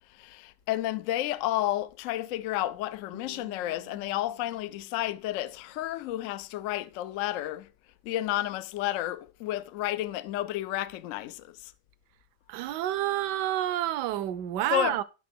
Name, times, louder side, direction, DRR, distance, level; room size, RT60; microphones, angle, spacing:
voice 1, 0.1-7.7 8.0-11.7 14.7-15.0, left 14 dB, 85° left, 0.7 m, -31 dB
Guitar, 3.1-6.1, right 2 dB, 25° left, 0.4 m, -54 dB
voice 2, 12.5-15.0, right 12 dB, 75° right, 1.1 m, -29 dB
8.3 x 5.8 x 4.3 m
omnidirectional pair, 1.9 m